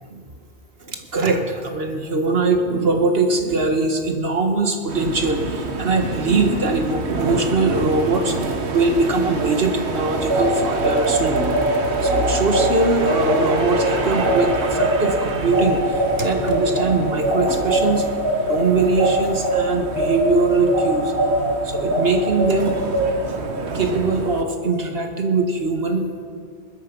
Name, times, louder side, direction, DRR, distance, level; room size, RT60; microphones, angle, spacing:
voice 1, 0.8-11.5 12.0-18.1 18.5-21.1 21.6-23.0 23.5-26.1, right 3 dB, 65° right, 4 dB, 1.8 m, -21 dB
sound 1, 4.9-24.4, right 3 dB, 90° right, 1.5 m, -28 dB
sound 2, 10.2-19.6 19.9-23.0, right 1 dB, 20° right, 3.9 m, -22 dB
21.0 x 12.5 x 5.4 m, 2.2 s
omnidirectional pair, 1.1 m